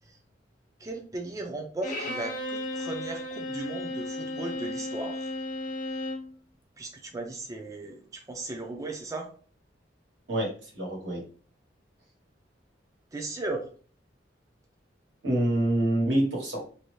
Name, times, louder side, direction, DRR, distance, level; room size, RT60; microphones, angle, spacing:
voice 1, 0.8-5.3 6.8-9.3 13.1-13.7, right 2 dB, 20° right, 3 dB, 0.4 m, -36 dB
Bowed string instrument, 1.8-6.3, left 1 dB, 50° left, 0.5 m, -34 dB
voice 2, 10.3-11.2 15.2-16.6, right 1 dB, 85° right, -2 dB, 1.2 m, -26 dB
2.6 x 2.1 x 3.1 m, 0.41 s
head